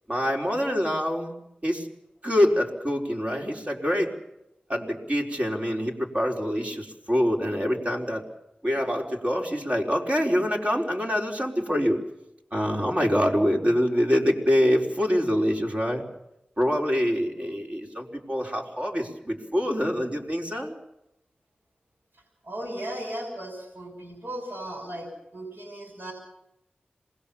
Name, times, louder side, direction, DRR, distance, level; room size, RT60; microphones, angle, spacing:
voice 1, 0.1-1.3 1.6-1.9 2.2-4.1 4.7-8.2 8.6-12.0 12.5-16.0 16.6-20.7, equal, 40° right, 1 dB, 4.7 m, -25 dB
voice 2, 22.4-26.1, right 1 dB, 80° right, 1 dB, 6.3 m, -36 dB
27.5 x 21.0 x 7.2 m, 0.86 s
wide cardioid pair, 70°, 3 cm